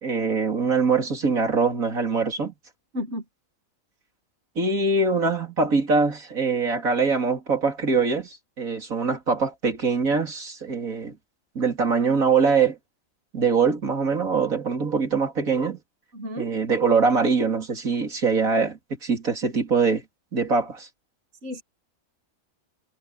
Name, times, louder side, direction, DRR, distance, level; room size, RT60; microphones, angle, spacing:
voice 1, 0.0-2.5 4.6-11.1 11.6-12.8 13.3-15.8 16.4-20.0 20.3-20.9, right 4 dB, 90° right, 3.7 m, -23 dB
voice 2, 2.9-3.2 16.1-16.6 21.4-21.6, left 1 dB, 55° right, 2.5 m, -32 dB
omnidirectional pair, 1.4 m